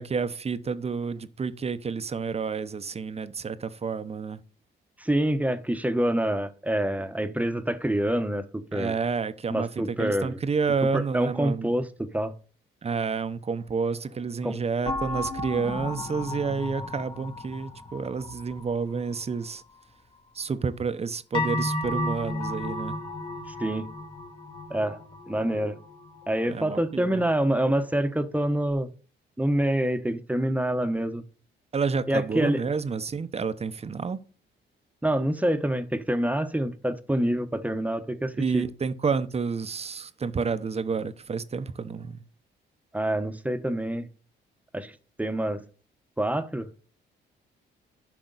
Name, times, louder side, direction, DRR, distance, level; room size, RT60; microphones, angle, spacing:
voice 1, 0.0-4.4 8.7-11.7 12.8-19.6 20.3-23.0 26.5-27.2 31.7-34.2 38.4-42.2, right 5 dB, 30° right, 0.8 m, -29 dB
voice 2, 5.0-9.0 9.5-10.4 10.9-12.3 14.4-14.5 23.6-23.9 24.7-25.0 25.3-25.8 26.3-28.9 29.4-31.2 32.1-32.6 35.0-38.6 42.9-44.1 44.7-44.9 45.2-45.6 46.2-46.7, right 1 dB, 5° right, 1.0 m, -26 dB
sound 1, 14.9-19.3 21.3-26.7 27.1-27.2, left 2 dB, 25° left, 1.9 m, -34 dB
10.5 x 5.8 x 4.0 m
cardioid pair, 90°, 20 cm